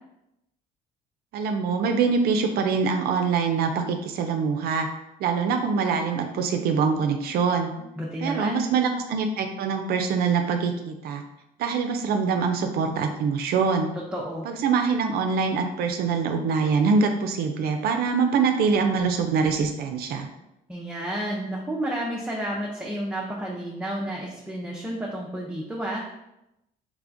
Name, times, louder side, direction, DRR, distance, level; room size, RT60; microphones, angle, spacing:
voice 1, 1.3-4.9 5.2-7.7 8.2-11.2 11.6-13.9 14.4-20.3, right 5 dB, 65° right, 5 dB, 0.4 m, -24 dB
voice 2, 7.8-8.6 14.1-14.5 20.7-26.1, right 1 dB, 5° right, -4 dB, 0.5 m, -31 dB
3.5 x 3.2 x 2.5 m, 0.88 s
cardioid pair, 110°, 17 cm